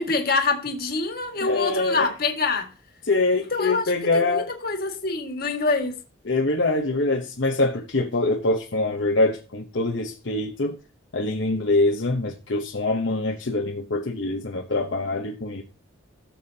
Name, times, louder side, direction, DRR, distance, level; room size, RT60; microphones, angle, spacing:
voice 1, 0.0-2.7 3.5-3.8 4.1-6.0, left 3 dB, 50° left, 1.8 m, -25 dB
voice 2, 1.4-2.1 3.0-4.5 6.2-10.8 11.1-15.6, left 2 dB, 65° left, 0.9 m, -24 dB
17.0 x 7.2 x 2.8 m
head